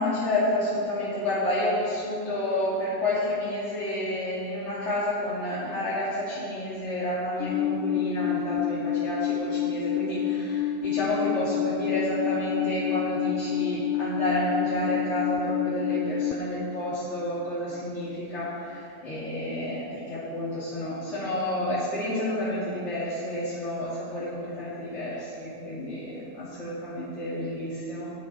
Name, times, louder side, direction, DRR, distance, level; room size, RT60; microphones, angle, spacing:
voice 1, 0.0-28.1, left 1 dB, 40° left, -9 dB, 2.7 m, -30 dB
Alarm, 7.4-16.3, left 8 dB, 85° left, 0.7 m, -28 dB
18.0 x 7.1 x 4.2 m, 2.5 s
omnidirectional pair, 1.9 m